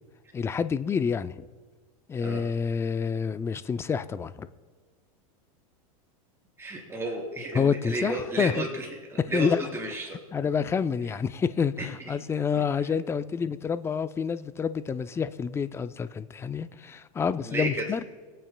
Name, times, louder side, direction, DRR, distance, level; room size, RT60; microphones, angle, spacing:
voice 1, 0.3-1.4 2.1-4.5 7.5-8.7 9.2-9.6 10.3-18.0, left 6 dB, 15° left, 0.4 m, -28 dB
voice 2, 6.6-10.2 17.5-17.8, right 2 dB, 15° right, 3.5 m, -32 dB
27.0 x 9.0 x 2.2 m
supercardioid pair, 125°, 19 cm